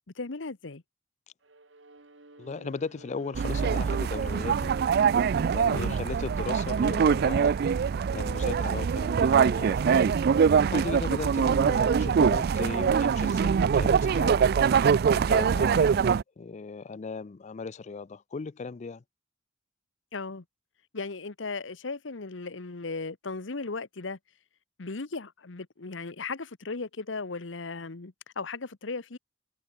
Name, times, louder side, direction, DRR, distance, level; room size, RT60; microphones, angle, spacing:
voice 1, 0.1-0.8 5.7-6.0 11.4-11.6 20.1-20.4 20.9-24.2 24.8-29.2, left 3 dB, 80° left, 1.1 m, -36 dB
Bowed string instrument, 1.4-9.8, right 2 dB, 80° right, 2.6 m, -51 dB
voice 2, 2.4-4.8 5.5-7.6 8.1-10.2 10.7-14.5 15.1-19.0, left 4 dB, 40° left, 0.4 m, -37 dB
sound 1, 3.3-16.2, right 6 dB, 55° right, 0.3 m, -23 dB
head